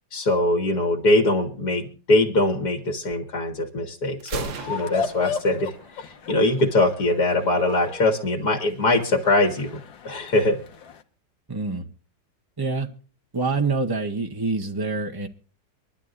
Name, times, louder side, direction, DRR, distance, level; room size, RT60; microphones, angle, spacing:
voice 1, 0.1-9.7 10.0-10.6, left 2 dB, 55° left, 3 dB, 2.2 m, -22 dB
Gunshot gunfire, 4.2-6.2, right 5 dB, 90° right, 2.0 m, -37 dB
sound 1, 4.6-11.0, left 6 dB, 85° left, 2.0 m, -36 dB
voice 2, 11.5-11.9 12.6-12.9 13.3-15.3, right 3 dB, 25° right, 5 dB, 0.5 m, -26 dB
24.5 x 11.5 x 2.5 m, 0.37 s
omnidirectional pair, 2.0 m